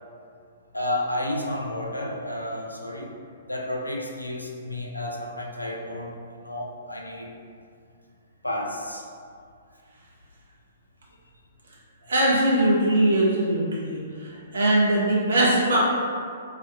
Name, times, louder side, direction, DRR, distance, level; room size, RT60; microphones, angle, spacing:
voice 1, 0.7-3.1 3.5-7.3 8.4-9.1, left 1 dB, 85° left, 0 dB, 0.4 m, -31 dB
voice 2, 12.1-14.0 14.5-15.8, right 1 dB, 60° right, -4 dB, 0.7 m, -21 dB
2.4 x 2.2 x 3.8 m, 2.3 s
figure-of-eight pair, 115°, 0 cm